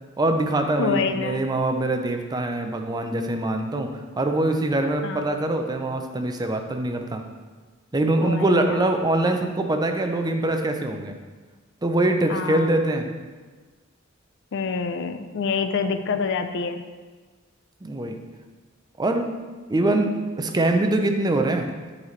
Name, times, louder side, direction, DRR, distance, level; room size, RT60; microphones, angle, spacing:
voice 1, 0.2-7.2 7.9-11.2 11.8-13.1 17.8-18.2 19.0-19.3 19.7-21.7, right 2 dB, 20° right, 5 dB, 0.5 m, -23 dB
voice 2, 0.8-1.4 5.0-5.3 8.2-8.8 12.3-12.7 14.5-16.8, left 5 dB, 60° left, 9 dB, 0.4 m, -26 dB
9.9 x 4.0 x 3.2 m, 1.4 s
head